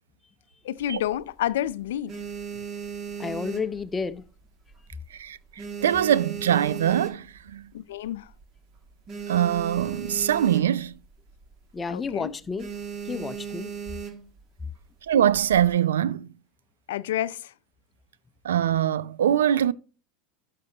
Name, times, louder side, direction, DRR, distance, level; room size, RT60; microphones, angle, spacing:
voice 1, 0.6-2.2 7.7-8.3 11.9-12.3 16.9-17.5, left 12 dB, 75° left, 0.4 m, -29 dB
sound 1, 0.8-1.5 1.9-4.4 4.7-5.0 5.3-7.6 8.0-8.1 8.3-8.4 8.8-11.0 11.3-11.5 11.9-12.1 12.6-14.4 15.1-15.7, right 7 dB, 35° right, 1.7 m, -37 dB
voice 2, 3.2-4.2 11.7-12.7 13.1-13.7, left 5 dB, 20° left, 0.6 m, -31 dB
voice 3, 5.1-7.6 9.3-10.9 15.1-16.3 18.4-19.7, right 10 dB, 80° right, 0.4 m, -23 dB
11.5 x 6.7 x 2.8 m
hypercardioid pair, 90°, 0 cm